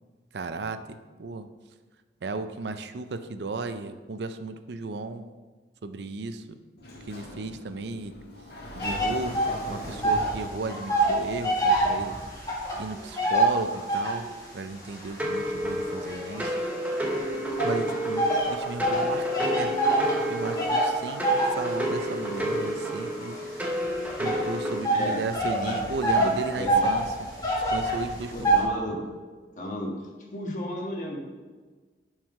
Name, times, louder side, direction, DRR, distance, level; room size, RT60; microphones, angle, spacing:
voice 1, 0.3-1.5 2.2-5.3 5.8-6.6 7.1-8.1 8.7-16.6 17.6-23.7 24.2-27.3 27.7-28.5, right 3 dB, 75° right, 10 dB, 0.5 m, -35 dB
Sliding door, 6.8-11.8, left 1 dB, 65° left, 1.6 m, -42 dB
sound 1, 8.8-10.4 10.6-14.3 14.9-17.0 17.6-28.6, right 1 dB, 20° left, 1.9 m, -26 dB
sound 2, 15.2-24.8, equal, 10° right, 0.8 m, -30 dB
voice 2, 24.9-25.2 25.5-25.8 26.1-26.9 28.3-29.0 29.5-29.9 30.3-31.2, left 1 dB, 45° left, -1 dB, 1.5 m, -33 dB
9.3 x 4.8 x 5.3 m, 1.4 s
head